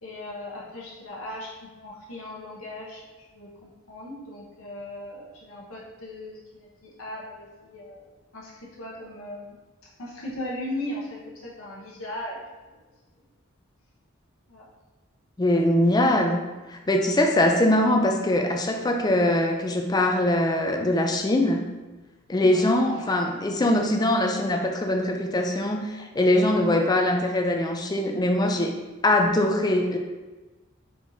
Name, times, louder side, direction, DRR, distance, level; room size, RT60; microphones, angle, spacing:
voice 1, 0.0-3.0 3.3-8.0 8.3-8.5 8.8-9.5 10.0-12.4 12.7-12.8 14.5-14.6 22.4-22.7, left 1 dB, 85° left, -5 dB, 0.9 m, -38 dB
voice 2, 15.4-16.4 16.7-21.6 22.3-28.7 29.0-30.0, left 1 dB, 20° left, 3 dB, 0.4 m, -22 dB
4.5 x 3.8 x 2.7 m, 1.2 s
head